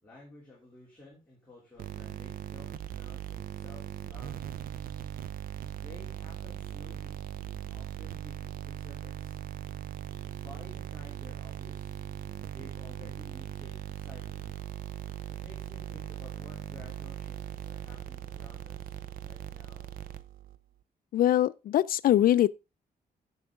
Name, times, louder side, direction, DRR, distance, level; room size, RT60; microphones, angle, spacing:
voice 1, 0.0-4.5 5.7-7.2 7.7-9.3 10.4-11.9 12.5-14.5 15.3-18.9 19.2-19.9, left 2 dB, 10° left, 3.1 m, -53 dB
sound 1, 1.8-20.6, right 11 dB, 65° right, 0.6 m, -40 dB
voice 2, 21.1-22.5, left 12 dB, 70° left, 0.4 m, -23 dB
9.6 x 7.2 x 3.6 m
wide cardioid pair, 180°, 16 cm